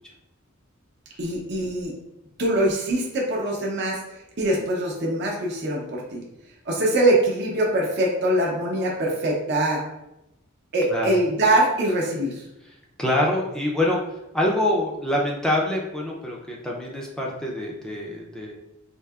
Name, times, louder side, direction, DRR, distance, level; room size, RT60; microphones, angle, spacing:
voice 1, 1.2-1.9 2.4-6.2 6.7-9.8 10.7-12.4, right 1 dB, 55° right, -2 dB, 0.7 m, -23 dB
voice 2, 13.0-14.0 14.3-18.5, left 1 dB, 5° left, -3 dB, 0.4 m, -25 dB
4.4 x 2.7 x 2.3 m, 0.90 s
head